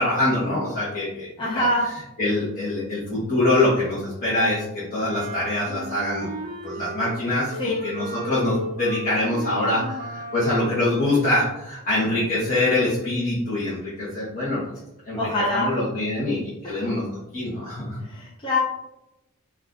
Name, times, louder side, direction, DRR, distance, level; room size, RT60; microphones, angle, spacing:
voice 1, 0.0-1.3 1.5-1.7 2.2-6.3 6.6-14.6 15.1-15.2 15.5-17.0 17.3-18.0, left 2 dB, 40° left, -10 dB, 0.9 m, -24 dB
voice 2, 1.4-1.9 7.6-7.8 15.1-15.7 16.6-16.8 18.0-18.6, left 1 dB, 20° left, -5 dB, 0.5 m, -24 dB
Wind instrument woodwind instrument, 5.0-7.2 7.5-10.6, equal, 45° right, 0.5 m, -34 dB
2.6 x 2.3 x 3.5 m, 0.90 s
head